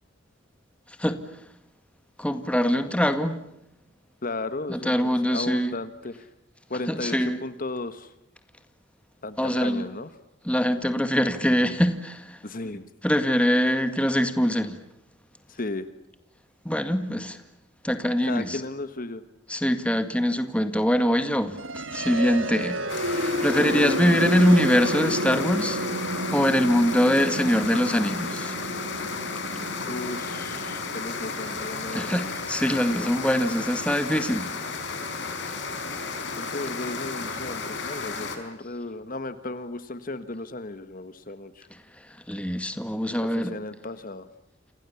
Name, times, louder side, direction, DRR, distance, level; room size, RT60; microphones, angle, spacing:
voice 1, 2.2-3.4 4.7-5.7 6.9-7.4 9.4-9.8 10.5-12.4 13.0-14.8 16.7-17.4 17.8-18.6 19.5-21.6 21.9-22.8 23.0-25.8 26.3-28.5 31.9-34.5 42.3-43.5, equal, 5° left, 2.0 m, -23 dB
voice 2, 4.2-6.3 6.7-8.1 9.2-10.1 12.4-12.9 15.5-15.9 18.2-19.2 29.8-32.3 36.4-41.7 43.2-44.3, left 2 dB, 45° left, 1.4 m, -35 dB
sound 1, 21.5-33.4, right 1 dB, 85° right, 2.0 m, -31 dB
sound 2, 22.9-38.4, left 4 dB, 65° left, 5.0 m, -33 dB
29.0 x 28.0 x 7.1 m
head